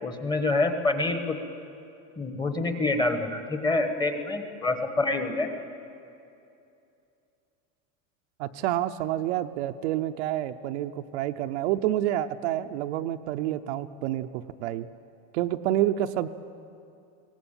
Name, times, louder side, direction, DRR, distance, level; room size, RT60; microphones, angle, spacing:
voice 1, 0.0-1.4 2.2-5.5, left 2 dB, 10° left, 6 dB, 1.1 m, -27 dB
voice 2, 8.4-14.9 15.3-16.3, right 13 dB, 55° right, 8 dB, 0.7 m, -28 dB
22.5 x 18.5 x 8.9 m, 2.6 s
supercardioid pair, 170°, 41 cm